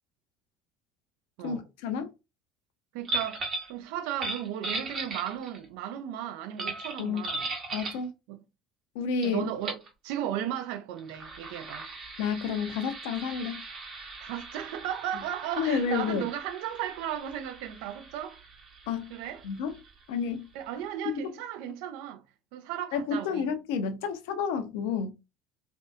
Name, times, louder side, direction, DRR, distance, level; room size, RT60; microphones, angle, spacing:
voice 1, 1.4-2.1 7.0-7.2 7.7-8.1 8.9-9.4 12.2-13.6 15.6-16.3 18.9-19.1 19.4-19.7 20.1-20.5 21.1-21.2 22.9-25.1, left 6 dB, 70° left, 0.4 m, -30 dB
voice 2, 2.9-7.5 8.3-8.4 9.2-9.8 10.0-11.9 14.2-18.4 19.1-19.4 20.5-22.2 22.5-23.5, right 10 dB, 70° right, 0.4 m, -35 dB
sound 1, 3.0-3.7 4.1-5.6 6.6-8.0 9.2-9.3 9.6-9.9 10.9-20.2, right 2 dB, 45° right, 0.9 m, -38 dB
2.6 x 2.1 x 2.2 m
hypercardioid pair, 70°, 0 cm